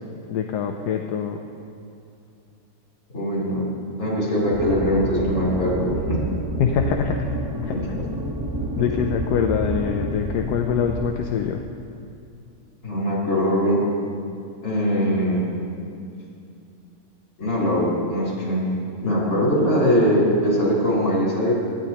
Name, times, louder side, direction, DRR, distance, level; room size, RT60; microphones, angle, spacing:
voice 1, 0.3-1.4 6.6-7.2 7.6-7.7 8.8-11.6, left 8 dB, 80° left, 3 dB, 1.2 m, -24 dB
voice 2, 3.1-3.7 4.0-6.2 7.7-8.0 12.8-13.8 14.6-15.5 17.4-18.7 19.0-21.5, equal, 60° left, -6 dB, 4.1 m, -21 dB
sound 1, 4.5-11.1, right 1 dB, 25° right, 0.4 m, -29 dB
17.5 x 12.5 x 2.9 m, 2.5 s
omnidirectional pair, 1.7 m